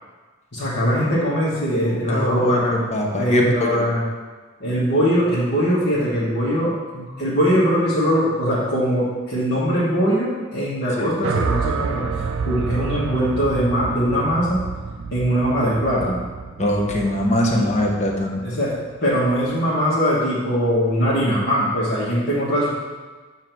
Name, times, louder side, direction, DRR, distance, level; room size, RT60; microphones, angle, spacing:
voice 1, 0.5-2.8 3.2-4.0 4.6-12.0 12.4-14.6 15.1-16.2 17.5-17.7 18.4-22.7, equal, 55° left, -10 dB, 1.5 m, -21 dB
voice 2, 1.8-3.8 11.0-11.1 16.6-18.4, left 1 dB, 35° left, 0 dB, 1.0 m, -22 dB
sound 1, 11.2-19.5, right 5 dB, 60° right, 0.4 m, -29 dB
7.3 x 2.9 x 6.0 m, 1.4 s
head